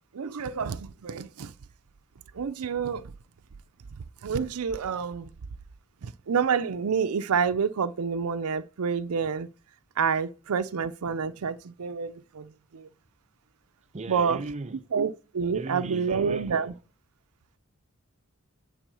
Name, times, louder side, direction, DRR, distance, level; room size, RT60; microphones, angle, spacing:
voice 1, 0.1-1.5 2.3-3.1 4.2-5.3 6.0-9.5 10.0-12.9 14.1-14.4 14.9-16.7, right 6 dB, 85° right, 0.5 m, -28 dB
voice 2, 13.9-14.8 15.5-16.7, right 3 dB, 30° right, 0.6 m, -37 dB
9.1 x 4.1 x 6.8 m
head